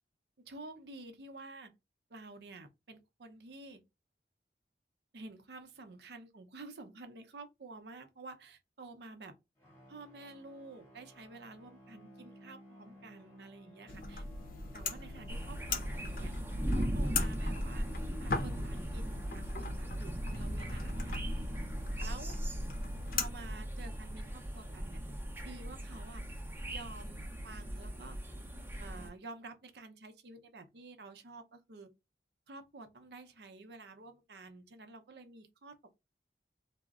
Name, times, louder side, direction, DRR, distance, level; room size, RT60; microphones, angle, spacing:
voice 1, 0.4-1.7 2.1-3.8 5.1-9.3 9.9-14.2 14.7-16.3 16.7-17.9 18.2-21.3 22.0-22.3 23.1-25.0 25.4-26.2 26.6-28.2 28.8-31.9 32.5-35.9, right 3 dB, 65° right, 0.6 m, -50 dB
sound 1, 9.6-20.3, right 1 dB, 15° left, 0.9 m, -58 dB
sound 2, 13.9-23.3, left 3 dB, 50° left, 0.6 m, -40 dB
sound 3, 15.3-29.1, equal, 10° right, 0.6 m, -38 dB
3.6 x 2.0 x 2.4 m
head